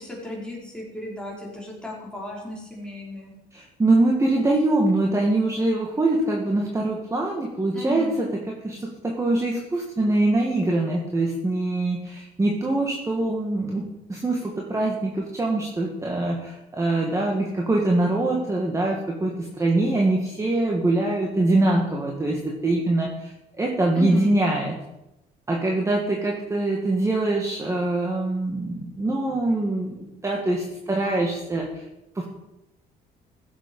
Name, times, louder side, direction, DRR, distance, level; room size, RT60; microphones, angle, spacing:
voice 1, 0.0-3.3 7.7-8.2 24.0-24.3, left 1 dB, 5° left, -4 dB, 5.1 m, -34 dB
voice 2, 3.5-24.8 25.5-31.8 32.2-32.3, right 2 dB, 15° right, -1 dB, 2.0 m, -24 dB
15.5 x 7.5 x 5.6 m, 0.91 s
cardioid pair, 110°, 17 cm